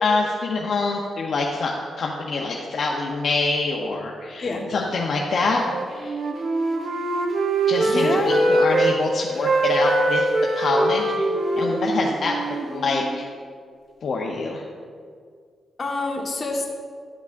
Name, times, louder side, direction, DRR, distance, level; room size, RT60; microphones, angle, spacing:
voice 1, 0.0-1.7 2.0-6.1 7.7-10.2 10.6-11.1 11.5-13.3 14.0-14.6, left 3 dB, 60° left, -1 dB, 0.6 m, -25 dB
Wind instrument woodwind instrument, 5.6-9.0 9.3-13.2, right 2 dB, 55° right, 0.8 m, -22 dB
voice 2, 7.8-8.4 15.8-16.7, left 2 dB, 40° left, -1 dB, 1.2 m, -26 dB
11.5 x 6.0 x 2.5 m, 2.1 s
cardioid pair, 90°, 0 cm